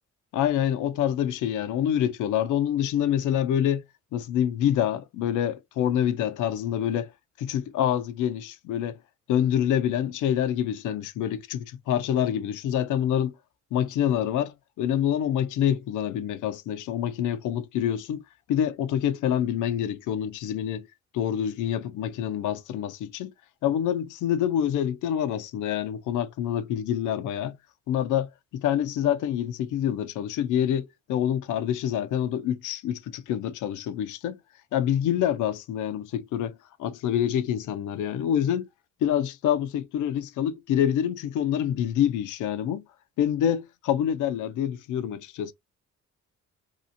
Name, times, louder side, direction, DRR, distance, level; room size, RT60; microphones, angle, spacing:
voice 1, 0.3-3.8 4.1-7.1 7.4-9.0 9.3-13.4 13.7-18.2 18.5-20.9 21.1-23.3 23.6-27.6 27.9-34.4 34.7-38.7 39.0-42.8 43.2-45.5, left 10 dB, 80° left, 0.5 m, -26 dB
2.8 x 2.4 x 2.6 m
cardioid pair, 90°, 30 cm